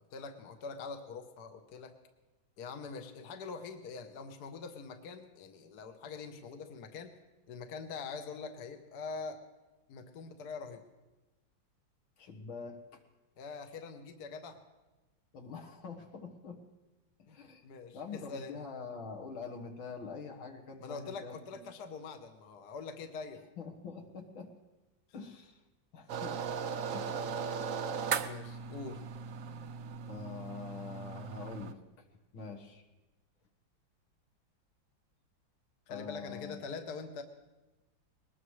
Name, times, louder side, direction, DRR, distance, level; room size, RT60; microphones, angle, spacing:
voice 1, 0.1-1.9 2.6-7.1 7.5-9.4 9.9-10.8 13.4-14.6 17.3-18.6 20.8-23.4 27.1-27.2 28.2-29.0 35.9-37.2, left 4 dB, 55° left, 6 dB, 1.5 m, -44 dB
voice 2, 12.2-13.0 15.3-16.6 17.2-17.7 17.9-21.6 23.6-24.5 25.1-25.6 25.9-26.4 26.9-27.3 30.1-31.8 32.3-32.8 35.9-36.7, left 5 dB, 80° left, 3 dB, 2.3 m, -45 dB
sound 1, 26.1-31.7, right 6 dB, 65° right, 0.8 m, -38 dB
21.0 x 19.5 x 3.2 m, 1.1 s
omnidirectional pair, 2.2 m